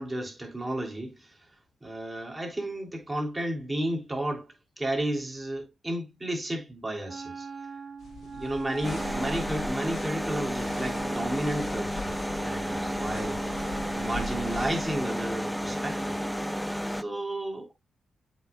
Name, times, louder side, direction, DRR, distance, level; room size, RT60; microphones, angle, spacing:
voice 1, 0.0-1.4 1.8-7.5 8.3-13.4 13.9-16.2 16.9-17.7, right 1 dB, 20° right, 3.0 m, -33 dB
Wind instrument woodwind instrument, 7.1-16.7, right 5 dB, 50° right, 0.7 m, -42 dB
sound 1, 8.0-15.0, left 2 dB, 80° left, 1.4 m, -42 dB
sound 2, 8.8-17.0, equal, 5° left, 0.4 m, -32 dB
7.9 x 5.5 x 2.3 m
supercardioid pair, 50°, 0 cm